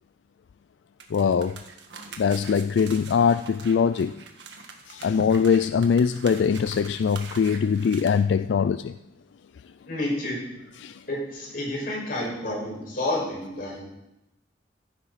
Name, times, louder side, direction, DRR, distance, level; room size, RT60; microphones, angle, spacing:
sound 1, 1.0-8.1, right 4 dB, 85° right, 1.6 m, -43 dB
voice 1, 1.1-1.6 2.2-4.2 4.9-8.9 10.8-11.0, left 6 dB, 90° left, 12 dB, 0.3 m, -22 dB
voice 2, 9.9-10.4 11.1-13.9, left 1 dB, 55° left, -3 dB, 5.6 m, -30 dB
15.5 x 10.5 x 4.2 m, 0.90 s
head